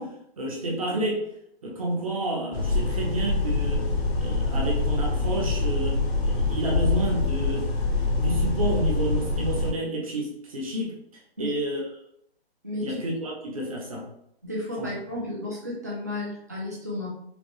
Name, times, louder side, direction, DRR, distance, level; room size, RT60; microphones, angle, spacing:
voice 1, 0.0-1.3 1.6-3.9 4.2-7.7 8.0-11.0 11.4-11.8 12.8-14.1 14.8-14.9, right 1 dB, 35° right, -2 dB, 0.9 m, -30 dB
sound 1, 2.5-9.7, left 3 dB, 80° left, 1.0 m, -25 dB
voice 2, 12.6-13.0 14.4-17.1, left 1 dB, 15° right, -5 dB, 0.5 m, -33 dB
5.0 x 2.2 x 3.1 m, 0.73 s
hypercardioid pair, 180°, 31 cm